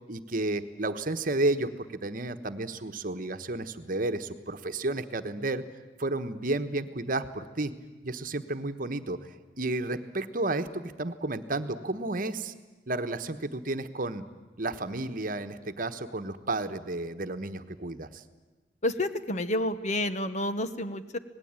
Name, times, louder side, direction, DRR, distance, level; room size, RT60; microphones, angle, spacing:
voice 1, 0.1-5.6 6.0-7.7 8.0-9.2 9.6-12.5 12.9-14.2 14.6-18.2, right 2 dB, 45° right, 9 dB, 1.2 m, -32 dB
voice 2, 18.8-21.2, left 1 dB, 40° left, 11 dB, 1.1 m, -29 dB
26.0 x 19.5 x 8.9 m, 1.2 s
head